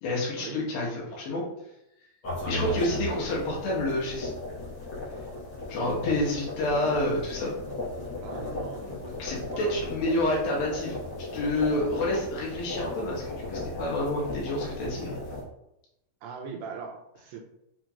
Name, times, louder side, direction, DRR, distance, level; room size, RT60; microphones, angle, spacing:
voice 1, 0.0-1.4 2.5-4.3 5.7-7.5 9.1-15.2, left 1 dB, 80° left, -4 dB, 3.0 m, -29 dB
sound 1, 2.2-15.4, left 1 dB, 50° left, 1.7 m, -36 dB
voice 2, 8.2-9.8 16.2-17.4, right 5 dB, 90° right, 2 dB, 2.5 m, -40 dB
6.5 x 3.1 x 2.4 m, 0.84 s
omnidirectional pair, 4.1 m